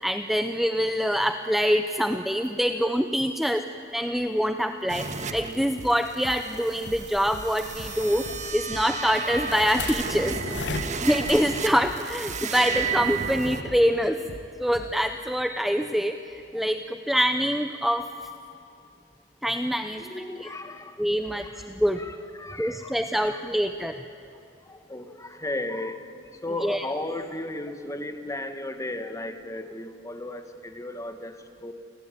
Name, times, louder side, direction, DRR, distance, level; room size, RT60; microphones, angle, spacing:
voice 1, 0.0-3.6 3.9-5.0 5.3-8.2 8.5-10.4 11.0-14.2 14.6-18.1 19.4-20.1 20.4-20.5 21.0-22.0 22.6-24.0 26.6-26.8, equal, ahead, 7 dB, 0.7 m, -25 dB
sound 1, 4.9-13.6, right 5 dB, 40° right, 1.5 m, -33 dB
sound 2, 5.3-5.5 5.8-6.0 6.2-6.4 6.9-7.1 7.3-7.5 7.8-8.0 8.3-8.5 8.7-8.9 9.3-9.5 9.8-10.0 10.3-10.5 10.7-10.9 11.2-11.4 11.8-12.0 12.3-12.5 12.7-12.9 13.2-13.4 13.7-13.9 14.3-14.5 14.8-15.0, right 1 dB, 85° right, 1.4 m, -42 dB
sound 3, 6.5-11.5, left 4 dB, 70° left, 1.0 m, -38 dB
voice 2, 19.9-21.0 21.3-21.6 21.9-23.4 24.7-26.1 26.4-31.4 31.6-31.7, left 2 dB, 15° left, 7 dB, 1.5 m, -35 dB
29.0 x 19.0 x 9.9 m, 2.7 s
head